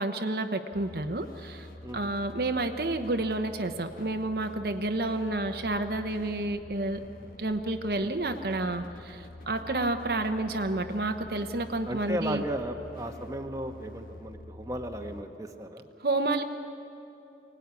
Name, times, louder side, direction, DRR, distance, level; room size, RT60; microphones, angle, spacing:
voice 1, 0.0-1.7 1.9-7.0 7.4-12.4 16.0-16.4, right 2 dB, 55° right, 6 dB, 0.9 m, -30 dB
sound 1, 0.7-15.2, left 2 dB, 50° left, 1.3 m, -47 dB
voice 2, 11.8-15.8, right 1 dB, 20° right, 4 dB, 1.2 m, -35 dB
24.0 x 18.0 x 9.6 m, 2.9 s
head